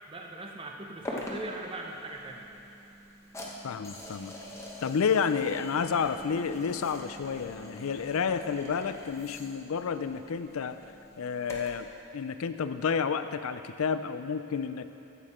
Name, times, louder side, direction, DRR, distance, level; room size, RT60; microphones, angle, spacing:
voice 1, 0.1-2.5, right 2 dB, 25° right, 1 dB, 0.8 m, -40 dB
sound 1, 1.0-11.9, left 1 dB, 15° left, 1.0 m, -44 dB
voice 2, 3.6-4.3 4.8-10.8 11.2-14.9, left 6 dB, 75° left, 11 dB, 0.4 m, -30 dB
13.5 x 8.4 x 4.3 m, 3.0 s
head